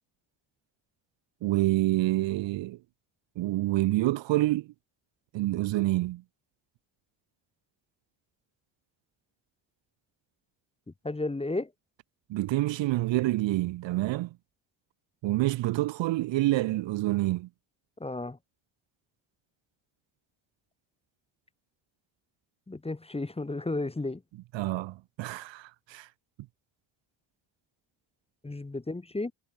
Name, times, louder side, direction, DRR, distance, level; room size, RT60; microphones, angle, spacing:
voice 1, 1.4-2.8 3.4-4.7 5.3-6.2 12.3-14.3 15.2-17.5 24.5-26.1, right 17 dB, 65° right, 0.5 m, -27 dB
voice 2, 10.9-11.7 18.0-18.4 22.7-24.2 28.4-29.3, left 2 dB, 10° left, 0.8 m, -33 dB
supercardioid pair, 60°, 50 cm